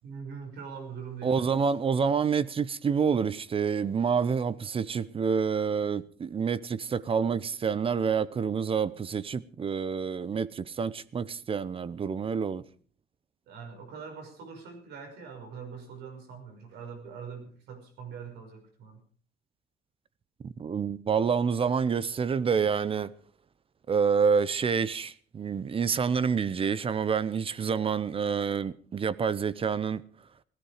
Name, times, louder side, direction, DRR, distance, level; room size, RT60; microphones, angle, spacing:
voice 1, 0.0-1.6 13.5-19.0, right 6 dB, 80° right, 5.8 m, -43 dB
voice 2, 1.2-12.6 20.4-23.1 23.9-30.0, right 6 dB, 35° right, 0.8 m, -28 dB
17.0 x 15.5 x 5.0 m
cardioid pair, 110°, 17 cm